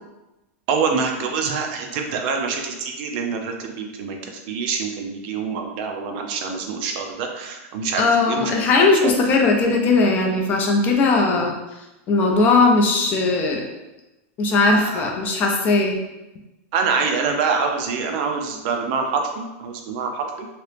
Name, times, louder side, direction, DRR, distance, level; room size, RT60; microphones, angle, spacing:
voice 1, 0.7-9.1 14.7-15.1 16.7-20.5, right 5 dB, 45° right, 3 dB, 0.4 m, -26 dB
voice 2, 8.0-11.5 12.1-13.6 14.4-16.0, left 3 dB, 25° left, 1 dB, 0.4 m, -18 dB
2.9 x 2.8 x 3.3 m, 1.0 s
supercardioid pair, 165°, 7 cm